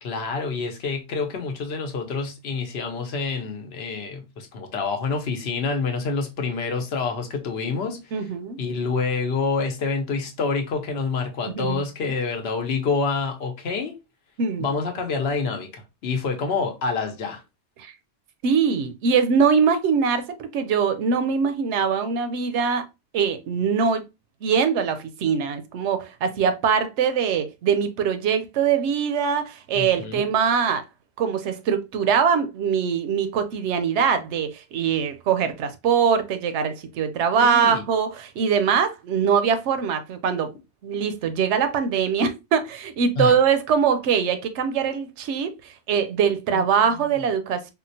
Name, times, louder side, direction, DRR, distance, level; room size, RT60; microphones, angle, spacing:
voice 1, 0.0-8.1 8.6-14.0 14.6-17.4 29.7-30.3 37.4-37.8 43.2-43.4 46.5-47.0, left 4 dB, 70° left, 0.9 m, -27 dB
voice 2, 8.1-8.6 11.5-11.8 14.4-14.7 17.8-17.9 18.4-22.9 23.1-24.0 24.4-30.8 31.2-40.5 40.8-47.7, right 6 dB, 85° right, 0.9 m, -22 dB
3.7 x 2.1 x 2.6 m
omnidirectional pair, 1.2 m